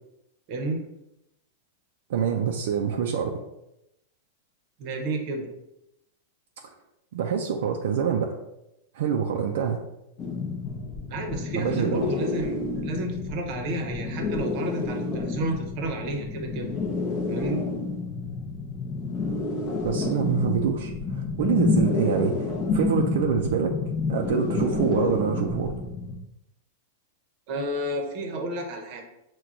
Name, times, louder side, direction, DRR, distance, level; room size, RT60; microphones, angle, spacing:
voice 1, 0.5-0.8 4.8-5.5 11.1-16.7 17.3-17.6 27.5-29.0, right 2 dB, 40° right, 3 dB, 0.8 m, -31 dB
voice 2, 2.1-3.4 6.6-6.7 7.1-8.4 8.9-9.8 11.5-12.1 19.8-23.7 24.1-25.7, right 7 dB, 70° right, 2 dB, 0.4 m, -26 dB
sound 1, 10.2-26.2, left 3 dB, 20° left, 0.7 m, -29 dB
6.0 x 2.2 x 3.8 m, 0.86 s
supercardioid pair, 160°, 0 cm